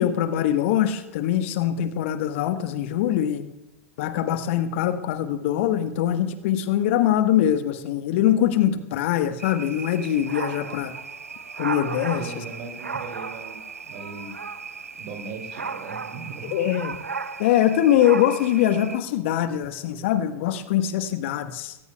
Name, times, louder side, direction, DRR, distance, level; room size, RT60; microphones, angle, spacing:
voice 1, 0.0-3.4 4.0-10.9 11.6-12.3 16.5-17.0 17.4-21.8, left 11 dB, 55° left, 9 dB, 1.3 m, -23 dB
sound 1, 9.4-19.0, right 5 dB, 80° right, 0.7 m, -35 dB
voice 2, 12.1-14.4 14.9-16.6, right 4 dB, 50° right, 3 dB, 2.7 m, -39 dB
22.0 x 18.0 x 2.3 m, 0.97 s
figure-of-eight pair, 85°, 8 cm